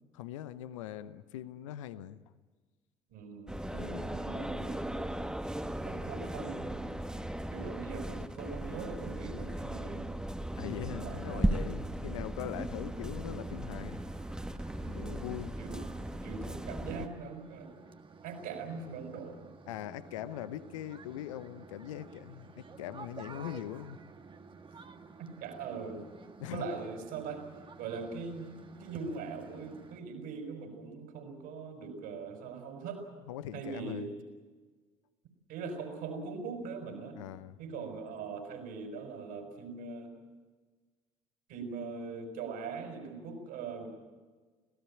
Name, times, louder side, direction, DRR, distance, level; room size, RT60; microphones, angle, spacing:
voice 1, 0.1-2.2 3.7-4.1 10.6-14.0 14.9-15.6 19.7-24.0 26.4-26.7 33.3-34.1 37.1-37.6, left 12 dB, 75° left, 15 dB, 0.9 m, -41 dB
voice 2, 3.1-5.2 5.8-6.8 7.5-10.2 10.9-11.8 14.8-15.2 15.6-15.8 16.2-17.8 18.2-19.5 25.2-26.0 26.5-27.4 27.8-28.5 28.8-33.0 33.5-34.1 35.5-37.2 37.6-40.1 41.5-43.9, right 5 dB, 65° right, 5 dB, 5.8 m, -41 dB
sound 1, 3.5-17.1, right 1 dB, 5° right, 1.6 m, -37 dB
sound 2, 12.6-30.0, right 4 dB, 30° right, 1.7 m, -52 dB
26.5 x 17.5 x 8.8 m, 1.4 s
figure-of-eight pair, 55°, 16 cm